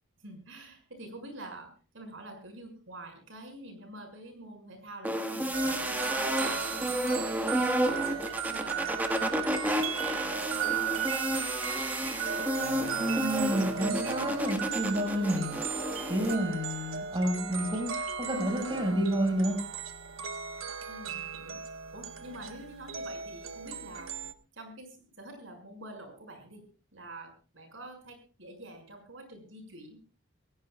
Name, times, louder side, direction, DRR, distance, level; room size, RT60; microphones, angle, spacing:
voice 1, 0.2-8.9 9.3-11.3 20.9-21.6 21.9-24.1 24.5-26.6 26.9-30.0, right 1 dB, 70° right, 4 dB, 6.2 m, -47 dB
sound 1, 5.0-16.4, equal, 10° right, 1.6 m, -31 dB
sound 2, 5.5-24.3, right 7 dB, 90° right, 1.4 m, -36 dB
voice 2, 13.0-19.6, equal, 25° right, 2 dB, 5.3 m, -30 dB
26.5 x 16.5 x 2.4 m, 0.34 s
head